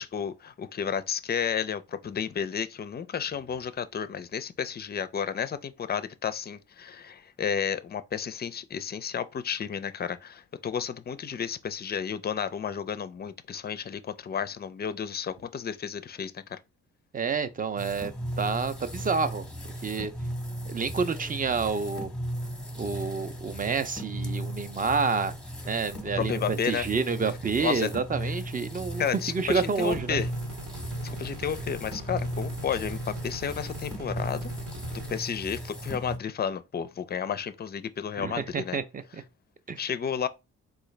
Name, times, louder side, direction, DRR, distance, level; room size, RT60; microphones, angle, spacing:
voice 1, 0.0-16.6 26.2-26.9 27.6-27.9 29.0-30.3 31.0-34.5 34.9-38.8 39.8-40.3, left 7 dB, 30° left, 0.4 m, -32 dB
voice 2, 17.1-19.5 19.8-20.1 20.6-22.1 22.8-25.3 25.6-30.2 38.2-39.2 39.7-39.8, right 5 dB, 25° right, 0.5 m, -29 dB
sound 1, 17.8-36.2, equal, ahead, 0.8 m, -36 dB
sound 2, 29.9-35.2, right 2 dB, 60° right, 0.9 m, -42 dB
3.8 x 2.4 x 3.2 m
supercardioid pair, 60°, 34 cm